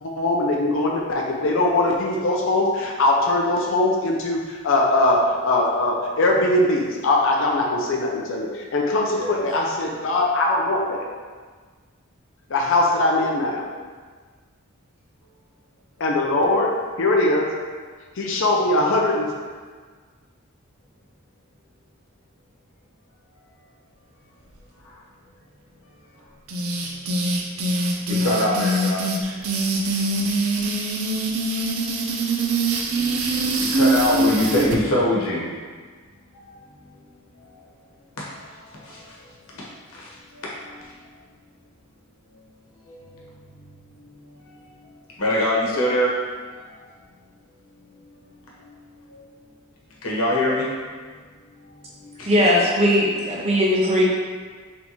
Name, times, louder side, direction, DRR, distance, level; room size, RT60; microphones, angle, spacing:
voice 1, 0.0-11.0 12.5-13.6 16.0-16.7 17.0-17.5 18.2-19.3, left 2 dB, 65° left, -1 dB, 0.5 m, -21 dB
sound 1, 26.5-34.8, right 2 dB, 80° right, 0.5 m, -23 dB
voice 2, 28.1-29.1 33.6-35.5 36.3-37.0 37.3-37.9 38.2-41.1 42.3-42.4 42.7-43.3 43.9-46.9 47.8-48.8 49.1-49.4 50.0-50.9 52.0-52.3, left 1 dB, 85° left, -5 dB, 1.1 m, -26 dB
voice 3, 52.3-54.0, equal, 30° right, -4 dB, 0.7 m, -19 dB
4.0 x 3.5 x 2.9 m, 1.5 s
head